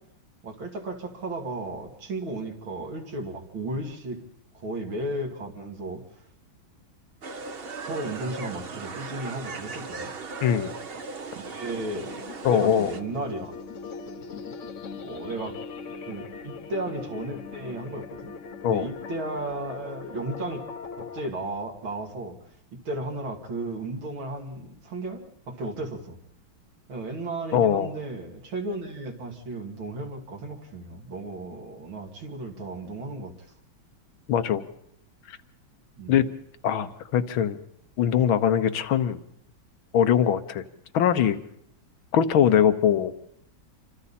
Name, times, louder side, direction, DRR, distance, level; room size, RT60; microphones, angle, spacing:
voice 1, 0.4-4.2 4.5-6.0 7.8-10.1 11.4-12.2 12.5-13.5 15.0-15.5 16.1-18.3 18.7-20.6 21.0-22.4 22.8-26.2 26.9-33.3 36.0-36.2, right 2 dB, 75° right, 2 dB, 3.3 m, -34 dB
sound 1, 7.2-13.0, right 4 dB, 40° right, 0.9 m, -37 dB
voice 2, 10.4-10.7 12.4-12.9 18.6-18.9 27.5-27.9 34.3-34.7 35.3-35.4 36.1-36.3 36.6-37.6 38.0-39.2 39.9-40.6 40.9-41.4 42.1-43.1, left 9 dB, 80° left, 11 dB, 1.8 m, -22 dB
sound 2, 11.7-21.3, left 5 dB, 45° left, 1.1 m, -40 dB
28.0 x 25.0 x 4.3 m, 0.74 s
omnidirectional pair, 2.2 m